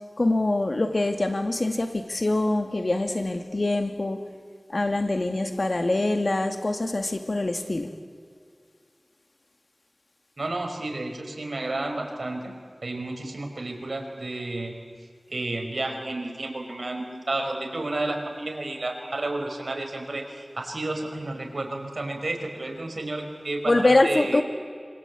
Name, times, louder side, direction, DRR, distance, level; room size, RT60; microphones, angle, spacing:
voice 1, 0.2-4.2 4.7-7.9 23.7-24.4, left 2 dB, 55° left, 6 dB, 2.3 m, -24 dB
voice 2, 10.4-12.5 12.8-14.7 15.3-24.4, right 2 dB, 70° right, 3 dB, 5.0 m, -31 dB
26.5 x 25.0 x 8.5 m, 2.3 s
wide cardioid pair, 55°, 0 cm